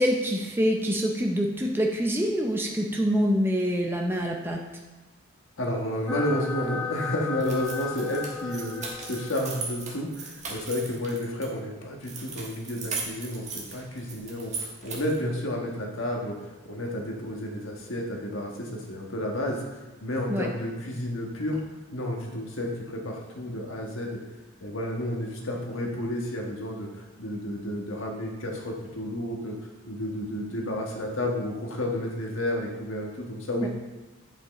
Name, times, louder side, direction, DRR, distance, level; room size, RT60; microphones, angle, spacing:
voice 1, 0.0-4.6 20.3-20.5 33.6-33.7, equal, 10° right, 1 dB, 0.5 m, -25 dB
voice 2, 5.6-21.6 21.9-24.2 24.6-29.6 29.9-33.7, left 1 dB, 75° left, 0 dB, 1.4 m, -31 dB
sound 1, 6.1-10.1, left 5 dB, 10° left, 1.0 m, -35 dB
sound 2, 7.4-11.5 12.0-15.2, right 4 dB, 35° right, 1.4 m, -38 dB
8.0 x 5.7 x 4.2 m, 1.1 s
head